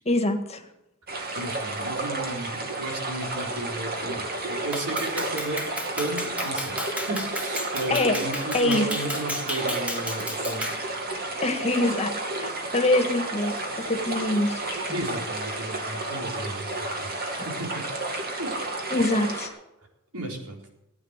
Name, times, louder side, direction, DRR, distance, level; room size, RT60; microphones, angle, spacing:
voice 1, 0.1-0.6 7.9-8.2 8.5-8.9 11.4-12.1 12.4-15.0 18.9-19.5, left 2 dB, 30° left, 6 dB, 1.8 m, -24 dB
sound 1, 1.1-19.5, right 2 dB, 45° right, 2.4 m, -31 dB
voice 2, 1.3-5.6 6.0-6.8 7.1-10.9 14.9-17.1 17.4-17.8 18.4-18.6 20.1-20.6, right 1 dB, 85° right, 0 dB, 4.4 m, -34 dB
Clapping, 4.7-10.8, equal, 5° right, 1.8 m, -33 dB
17.0 x 9.7 x 6.7 m, 0.90 s
head